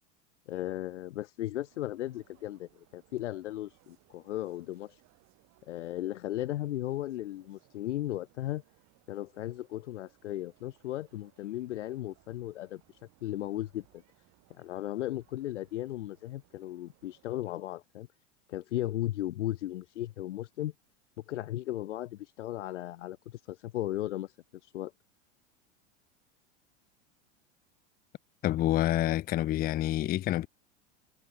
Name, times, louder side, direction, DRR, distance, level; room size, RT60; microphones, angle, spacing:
voice 1, 0.5-4.9 5.7-8.6 9.1-12.8 13.2-13.8 14.6-18.1 18.5-20.7 21.3-24.3 24.7-24.9, left 14 dB, 80° left, 0.8 m, -36 dB
sound 1, 1.6-17.3, right 20 dB, 50° right, 6.1 m, -67 dB
voice 2, 28.4-30.5, left 14 dB, 25° left, 0.5 m, -27 dB
hypercardioid pair, 95°, 35 cm